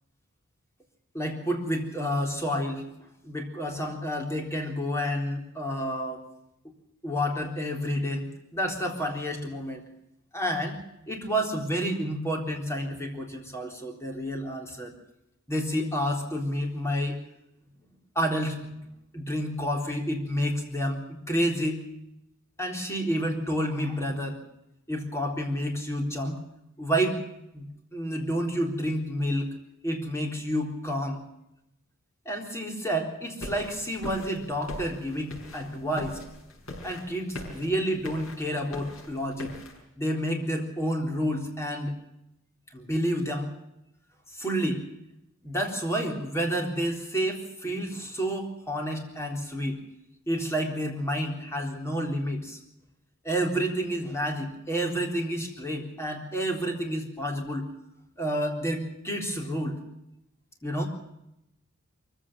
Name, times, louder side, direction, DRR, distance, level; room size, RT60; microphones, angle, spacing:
voice 1, 1.1-2.8 3.2-6.2 7.0-9.8 10.3-14.9 15.5-17.2 18.2-18.6 19.1-21.8 22.6-24.4 24.9-26.4 26.8-27.2 27.5-27.6 27.9-29.5 29.8-31.2 32.3-36.2 36.8-39.5 40.0-41.9 42.7-43.5 44.3-44.8 45.4-49.8 50.3-52.6 53.2-57.7 58.2-59.8 60.6-60.9, equal, 15° left, 2 dB, 3.8 m, -29 dB
sound 1, 33.4-39.8, left 1 dB, 75° left, 6.5 m, -42 dB
23.5 x 16.0 x 7.5 m, 0.84 s
head